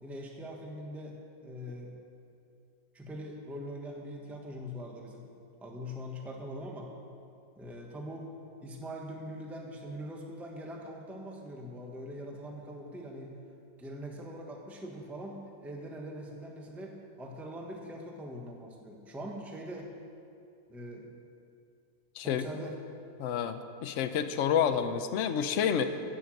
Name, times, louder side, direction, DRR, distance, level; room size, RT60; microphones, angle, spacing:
voice 1, 0.0-1.2 1.4-2.0 2.9-5.3 5.6-6.9 7.6-8.3 8.6-13.3 13.8-19.9 20.7-21.1 22.2-22.8, equal, ahead, 0 dB, 1.0 m, -42 dB
voice 2, 23.2-25.8, left 8 dB, 60° left, 9 dB, 0.8 m, -29 dB
15.0 x 6.9 x 7.8 m, 2.5 s
omnidirectional pair, 2.0 m